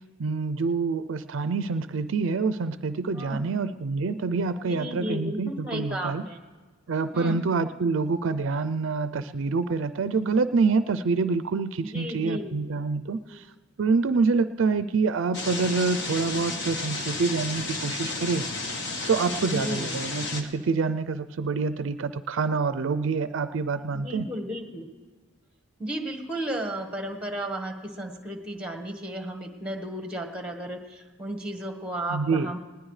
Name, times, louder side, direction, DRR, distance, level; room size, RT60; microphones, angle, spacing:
voice 1, 0.2-6.2 6.9-13.4 13.8-18.4 19.1-24.3 32.1-32.5, right 4 dB, 65° right, 13 dB, 0.4 m, -26 dB
voice 2, 3.1-3.5 4.7-6.4 7.1-7.4 11.8-12.5 13.3-13.4 19.5-20.0 23.9-24.9 25.8-32.6, right 1 dB, 5° right, 4 dB, 1.3 m, -34 dB
sound 1, 15.3-20.4, left 3 dB, 55° left, 1.4 m, -32 dB
20.0 x 18.0 x 3.2 m, 1.3 s
head